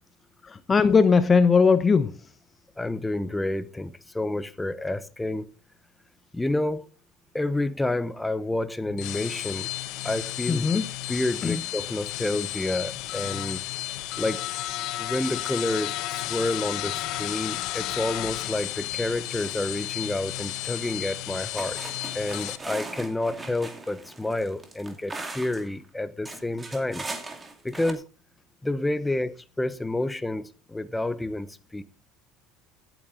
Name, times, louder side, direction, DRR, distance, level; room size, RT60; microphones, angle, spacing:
voice 1, 0.4-2.2 10.5-10.8 11.4-11.6, left 5 dB, 30° left, 0.8 m, -19 dB
voice 2, 2.8-5.5 6.3-6.9 7.3-9.7 10.0-10.8 11.1-13.6 14.2-14.4 15.0-21.8 22.1-27.1 27.6-28.0 28.6-31.5 31.7-31.8, left 2 dB, 10° left, 1.0 m, -29 dB
sound 1, 8.8-22.6, left 15 dB, 65° left, 1.1 m, -33 dB
sound 2, 21.1-21.2 21.6-25.7 26.3-27.9, right 2 dB, 20° right, 2.5 m, -39 dB
16.0 x 9.1 x 3.9 m
supercardioid pair, 95°, 0 cm